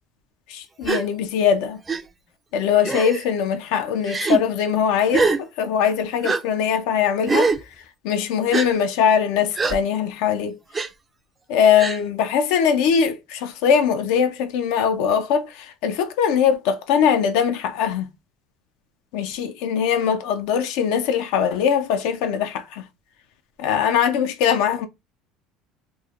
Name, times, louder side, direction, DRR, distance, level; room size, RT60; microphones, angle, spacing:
voice 1, 0.5-1.8 2.5-7.5 8.0-10.6 11.5-18.1 19.1-22.8 23.6-24.9, left 7 dB, 80° left, 0.4 m, -21 dB
Gasp, 0.8-1.0 1.9-2.0 2.8-3.2 4.1-4.4 5.1-5.4 6.2-6.4 7.3-7.6 8.5-8.7 9.6-9.8 10.7-10.9 11.8-12.0, right 4 dB, 20° right, 0.3 m, -22 dB
3.0 x 2.1 x 2.4 m
supercardioid pair, 115°, 0 cm